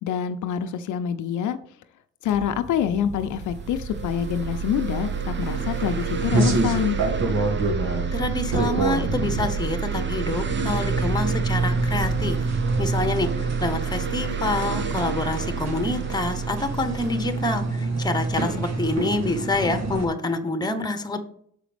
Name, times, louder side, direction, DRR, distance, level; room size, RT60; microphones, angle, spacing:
voice 1, 0.0-1.6 2.2-7.0, left 9 dB, 75° left, 8 dB, 0.7 m, -26 dB
sound 1, 2.2-12.3, right 1 dB, 25° right, 1.2 m, -36 dB
sound 2, 3.3-18.7, right 7 dB, 40° right, 0.8 m, -30 dB
sound 3, 5.4-20.1, right 3 dB, 60° right, 1.9 m, -27 dB
voice 2, 8.1-12.5 12.8-21.2, left 2 dB, 15° left, 8 dB, 1.1 m, -27 dB
7.0 x 5.0 x 5.2 m, 0.65 s
cardioid pair, 90°, 30 cm